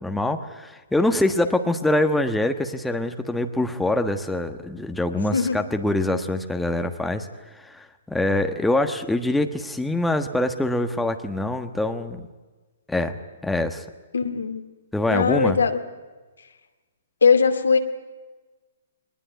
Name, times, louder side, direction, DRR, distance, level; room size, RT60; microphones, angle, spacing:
voice 1, 0.0-7.3 7.5-12.3 12.9-13.2 13.4-13.8 14.9-15.6, left 1 dB, 5° left, 6 dB, 1.3 m, -24 dB
voice 2, 5.3-5.6 14.1-14.6 15.1-15.8 17.2-17.8, left 5 dB, 90° left, 6 dB, 2.4 m, -20 dB
21.5 x 20.0 x 9.3 m, 1.3 s
hypercardioid pair, 140°, 0 cm